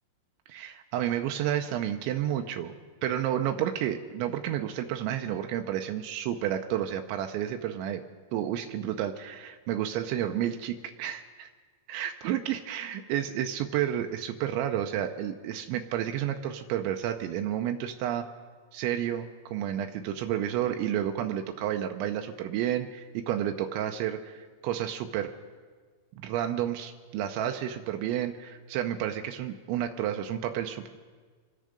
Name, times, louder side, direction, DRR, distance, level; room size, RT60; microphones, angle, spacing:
voice 1, 0.5-2.7 3.0-8.0 8.3-11.5 11.9-18.2 18.7-25.3 26.2-31.0, right 11 dB, 90° right, 6 dB, 2.7 m, -31 dB
26.0 x 10.0 x 5.1 m, 1.5 s
omnidirectional pair, 6.0 m